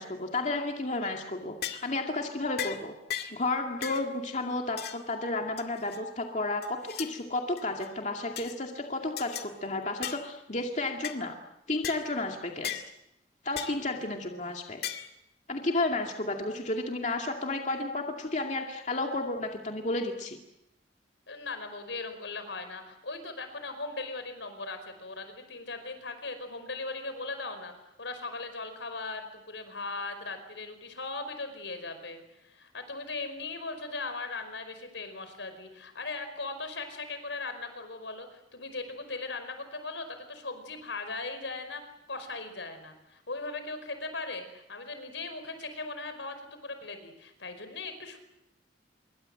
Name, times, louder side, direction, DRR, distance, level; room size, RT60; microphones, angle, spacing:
voice 1, 0.0-2.9 3.3-11.3 11.7-12.8 13.4-14.8 15.5-20.4, left 2 dB, 40° left, 2 dB, 2.3 m, -32 dB
sound 1, 1.0-1.2 1.6-1.9 2.6-2.8 3.1-3.4 3.8-4.1 4.8-5.0 5.6-6.0 6.6-7.1 7.6-7.9 8.4-8.6 9.2-9.5 10.0-10.3 11.0-11.2 11.8-12.0 12.6-12.9 13.6-13.8 14.8-15.1, left 9 dB, 60° left, 2.2 m, -37 dB
voice 2, 15.7-16.0 21.3-48.2, left 3 dB, 85° left, 9 dB, 5.1 m, -39 dB
27.0 x 23.0 x 7.8 m, 0.84 s
head